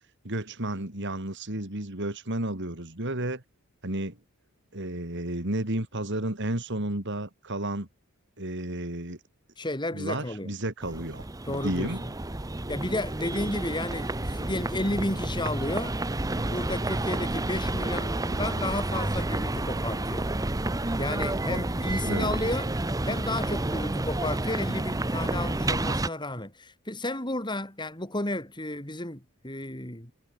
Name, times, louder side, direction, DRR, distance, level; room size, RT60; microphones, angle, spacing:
voice 1, 0.2-3.4 3.8-4.2 4.7-7.9 8.4-9.2 9.9-12.0 22.0-22.3, right 1 dB, 55° right, 3.3 m, -32 dB
voice 2, 9.6-10.5 11.4-12.0 12.7-16.0 16.4-20.3 21.0-22.7 23.0-30.1, left 1 dB, 20° left, 5.4 m, -32 dB
sound 1, 10.8-26.1, right 2 dB, 15° right, 0.8 m, -30 dB
head